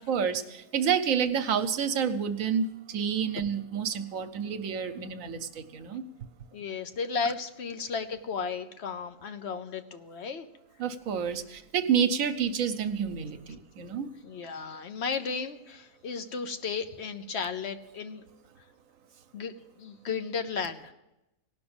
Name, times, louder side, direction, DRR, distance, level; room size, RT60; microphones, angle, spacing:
voice 1, 0.0-6.0 10.8-14.1, right 7 dB, 75° right, 10 dB, 1.2 m, -29 dB
voice 2, 6.5-10.5 14.2-18.2 19.3-20.9, left 5 dB, 55° left, 9 dB, 1.0 m, -34 dB
17.5 x 6.1 x 8.8 m, 0.94 s
omnidirectional pair, 1.4 m